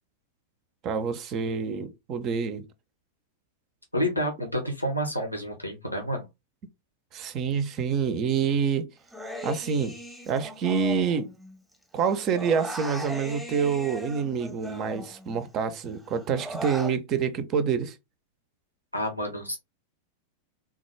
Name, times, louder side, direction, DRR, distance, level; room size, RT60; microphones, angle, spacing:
voice 1, 0.8-2.7 7.1-8.9 9.4-10.0 10.3-11.3 11.9-18.0, right 6 dB, 35° right, 0.5 m, -27 dB
voice 2, 3.9-6.3 18.9-19.6, equal, 90° left, 0.7 m, -29 dB
Human voice, 9.1-11.7 12.0-15.5 15.9-17.0, equal, ahead, 0.8 m, -39 dB
3.6 x 2.3 x 3.1 m
figure-of-eight pair, 90°, 0 cm